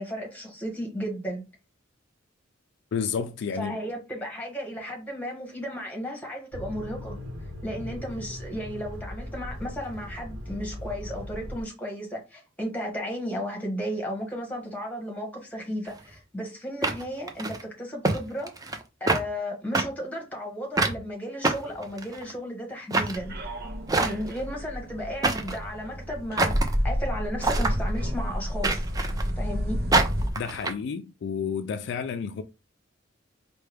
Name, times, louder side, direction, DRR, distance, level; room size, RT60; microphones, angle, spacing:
voice 1, 0.0-1.4 3.6-7.2 7.6-18.5 19.0-23.3 23.9-28.8 29.4-29.9, equal, 10° left, 1.2 m, -34 dB
voice 2, 2.9-3.8 30.4-32.4, left 6 dB, 60° left, 0.3 m, -31 dB
sound 1, 6.5-11.6, left 1 dB, 80° right, 1.0 m, -38 dB
sound 2, 15.9-16.0 16.8-17.6 18.0-18.2 18.5-18.8 19.1-19.2 19.7-19.9 20.8-21.0 21.4-22.3 22.9-23.2 23.9-24.4 25.2-25.6 26.4-26.7 27.4-27.8 28.6-29.3 29.9-30.7, right 3 dB, 20° right, 0.5 m, -25 dB
sound 3, 23.1-30.3, equal, 50° right, 0.7 m, -30 dB
4.6 x 2.2 x 3.3 m
head